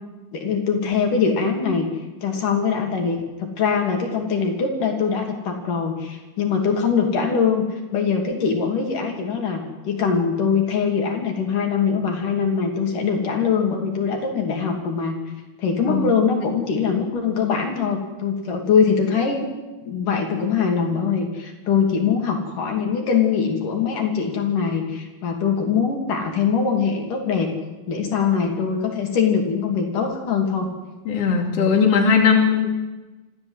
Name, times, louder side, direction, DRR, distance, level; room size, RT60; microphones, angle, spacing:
voice 1, 0.3-1.9 2.2-15.1 15.6-19.5 19.9-27.5 27.9-30.7, left 6 dB, 70° left, 2 dB, 4.4 m, -22 dB
voice 2, 15.9-16.2 31.1-32.7, left 6 dB, 45° left, 0 dB, 3.6 m, -18 dB
26.5 x 15.0 x 8.1 m, 1.2 s
omnidirectional pair, 3.9 m